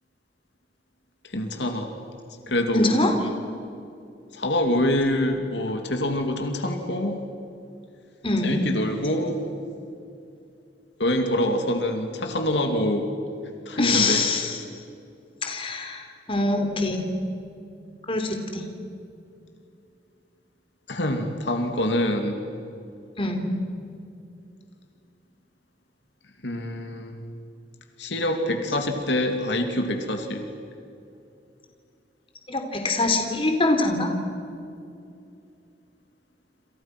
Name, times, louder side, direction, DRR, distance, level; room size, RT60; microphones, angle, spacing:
voice 1, 1.2-1.9 2.5-2.9 4.3-7.2 8.4-9.4 11.0-13.1 13.7-14.6 20.9-22.4 26.4-27.2 28.0-30.5, left 1 dB, 75° left, 5 dB, 2.6 m, -25 dB
voice 2, 2.7-3.1 8.2-8.5 13.8-14.6 15.4-17.0 18.1-18.6 23.2-23.5 32.5-34.1, left 2 dB, 30° left, 4 dB, 3.4 m, -24 dB
29.0 x 28.0 x 6.0 m, 2.6 s
head